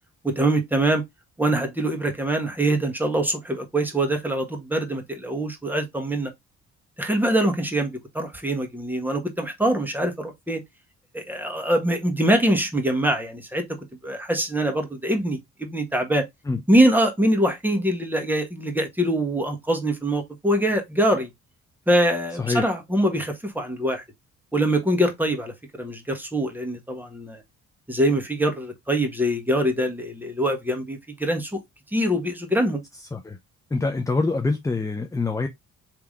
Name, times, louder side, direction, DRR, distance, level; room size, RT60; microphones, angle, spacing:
voice 1, 0.2-1.0 1.4-6.3 7.0-10.6 11.1-13.7 14.0-16.2 16.7-21.3 21.9-24.0 24.5-27.4 27.9-31.6 31.9-32.8, right 1 dB, 5° right, 1.2 m, -23 dB
voice 2, 33.7-35.5, left 3 dB, 10° left, 0.5 m, -25 dB
3.5 x 2.9 x 3.6 m
cardioid pair, 90°, 30 cm